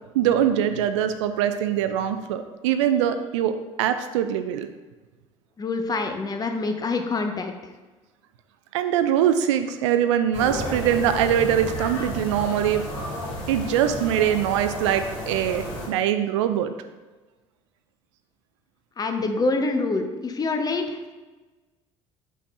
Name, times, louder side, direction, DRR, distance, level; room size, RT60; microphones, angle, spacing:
voice 1, 0.1-4.7 8.7-12.8 13.5-16.7, right 10 dB, 65° right, 9 dB, 0.4 m, -23 dB
voice 2, 5.6-7.5 19.0-21.1, left 3 dB, 25° left, 5 dB, 0.7 m, -26 dB
sound 1, 10.3-15.9, equal, 75° left, 1.6 m, -32 dB
7.0 x 5.7 x 2.3 m, 1.2 s
figure-of-eight pair, 60°, 17 cm